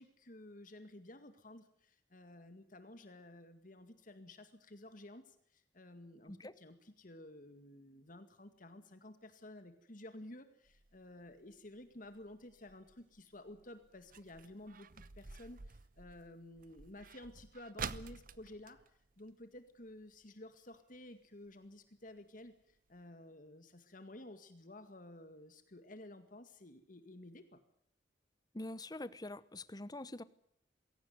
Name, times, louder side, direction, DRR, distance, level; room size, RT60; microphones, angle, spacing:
voice 1, 0.0-14.9 15.1-18.8 19.2-27.6, left 1 dB, 50° left, 9 dB, 2.1 m, -53 dB
voice 2, 6.3-6.6 28.5-30.2, left 1 dB, 20° left, 16 dB, 1.0 m, -45 dB
sound 1, 10.7-19.9 20.2-20.3 20.6-21.0 21.5-21.6 22.1-22.2 22.5-22.6 22.9-23.0, right 6 dB, 50° right, 0.9 m, -50 dB
21.5 x 17.5 x 9.4 m, 0.68 s
head